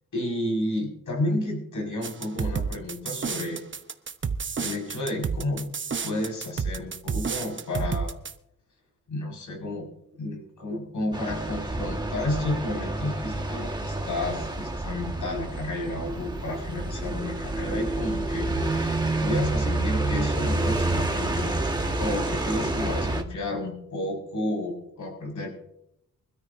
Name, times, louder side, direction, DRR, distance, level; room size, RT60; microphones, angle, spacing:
voice 1, 0.1-3.6 4.6-5.6 6.0-8.2 9.1-9.9 10.2-21.6 22.0-25.5, left 1 dB, 55° left, 1 dB, 5.7 m, -31 dB
sound 1, 2.0-8.3, right 5 dB, 35° right, 0.9 m, -30 dB
sound 2, 11.1-23.2, right 2 dB, 10° right, 1.7 m, -28 dB
24.5 x 13.0 x 2.7 m, 0.80 s
cardioid pair, 110°, 36 cm